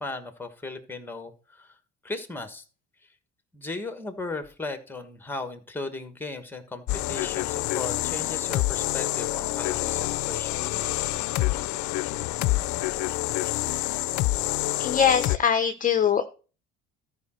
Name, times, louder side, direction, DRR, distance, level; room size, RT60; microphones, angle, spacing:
voice 1, 0.0-1.7 2.0-2.6 3.5-10.8, left 3 dB, 5° left, 9 dB, 1.3 m, -36 dB
sound 1, 6.9-15.4, left 18 dB, 70° left, 0.5 m, -27 dB
voice 2, 14.8-16.2, left 7 dB, 25° left, 8 dB, 0.6 m, -22 dB
13.5 x 4.9 x 4.4 m, 0.36 s
cardioid pair, 120°, 30 cm